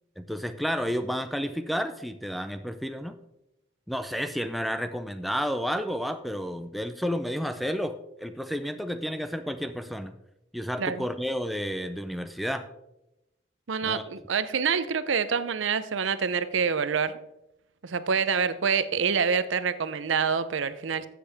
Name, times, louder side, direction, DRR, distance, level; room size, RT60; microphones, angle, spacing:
voice 1, 0.2-3.2 3.9-10.1 10.5-12.7 13.8-14.0, equal, ahead, 9 dB, 0.4 m, -31 dB
voice 2, 13.7-17.2 17.8-21.1, right 6 dB, 85° right, 13 dB, 0.6 m, -26 dB
13.5 x 7.5 x 3.4 m, 0.89 s
head